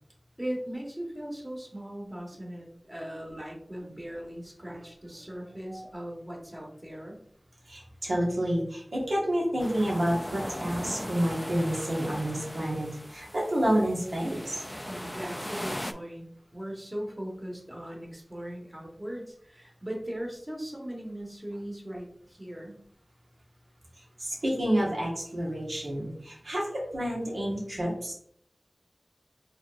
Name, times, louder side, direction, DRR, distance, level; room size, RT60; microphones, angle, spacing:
voice 1, 0.4-7.2 14.9-22.8, right 1 dB, 25° right, -1 dB, 1.4 m, -39 dB
voice 2, 7.7-14.6 24.2-28.1, equal, 85° right, -3 dB, 1.4 m, -29 dB
sound 1, 9.6-15.9, equal, 10° left, 0.3 m, -39 dB
4.3 x 3.5 x 2.5 m, 0.64 s
wide cardioid pair, 45°, 0 cm